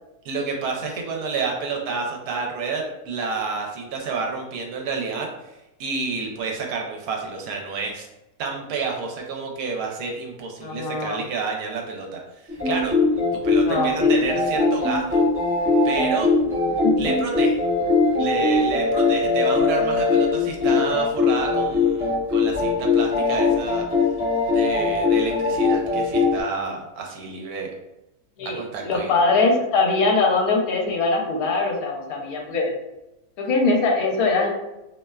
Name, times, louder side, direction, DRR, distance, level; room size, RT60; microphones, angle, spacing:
voice 1, 0.2-5.3 5.8-8.1 8.4-12.2 12.6-12.9 13.3-15.2 15.8-16.3 17.0-17.6 18.2-24.1 24.5-27.7 28.4-29.2, right 4 dB, 80° right, 0 dB, 1.1 m, -29 dB
voice 2, 10.6-11.2 13.7-14.1 16.8-16.9 28.4-32.7 33.4-34.5, left 3 dB, 75° left, 0 dB, 1.0 m, -22 dB
sound 1, 12.5-26.4, left 3 dB, 15° right, 0.4 m, -20 dB
2.7 x 2.1 x 2.2 m, 0.95 s
omnidirectional pair, 1.6 m